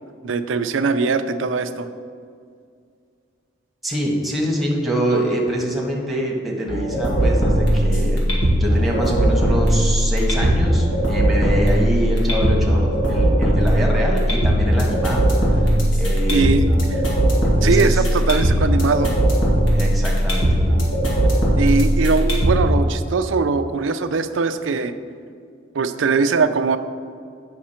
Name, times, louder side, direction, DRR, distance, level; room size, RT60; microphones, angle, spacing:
voice 1, 0.2-1.9 16.3-17.0 17.6-19.1 21.6-24.9 25.7-26.8, right 4 dB, 75° right, 10 dB, 0.5 m, -21 dB
voice 2, 3.8-8.2 8.6-15.7 16.0-16.6 17.4-18.0 19.7-20.5, equal, ahead, -2 dB, 1.4 m, -25 dB
sound 1, 6.7-22.7, equal, 90° left, 1.9 m, -18 dB
8.5 x 5.9 x 4.3 m, 2.2 s
head